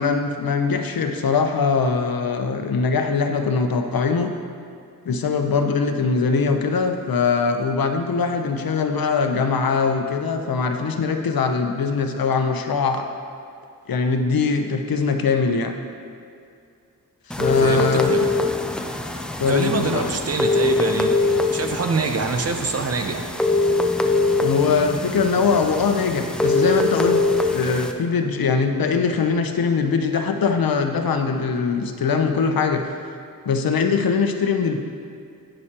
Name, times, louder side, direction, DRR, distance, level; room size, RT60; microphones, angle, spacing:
voice 1, 0.0-4.3 5.1-13.1 13.9-15.7 17.3-18.1 19.4-20.1 24.4-27.2 27.5-32.8 33.5-34.8, left 5 dB, 70° left, 5 dB, 0.8 m, -22 dB
sound 1, 17.3-27.9, left 3 dB, 5° left, 0.4 m, -23 dB
voice 2, 17.6-18.2 19.5-21.1 21.5-23.3, right 4 dB, 40° right, 5 dB, 0.7 m, -25 dB
11.0 x 8.8 x 2.9 m, 2.4 s
wide cardioid pair, 160°, 37 cm